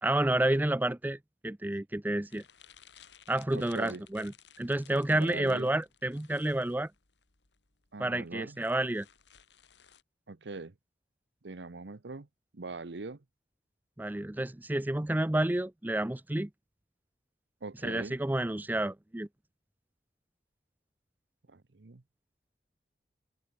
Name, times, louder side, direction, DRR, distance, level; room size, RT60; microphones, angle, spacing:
voice 1, 0.0-1.2 1.4-2.4 3.3-4.3 4.6-6.9 8.0-9.1 14.0-16.5 17.8-19.3, right 1 dB, 10° right, 0.5 m, -30 dB
sound 1, 2.3-10.0, left 9 dB, 85° left, 2.4 m, -59 dB
voice 2, 3.5-4.0 5.1-5.7 7.9-8.6 10.3-10.7 11.4-12.3 12.5-13.2 17.6-18.2 21.5-22.0, right 3 dB, 80° right, 0.9 m, -42 dB
head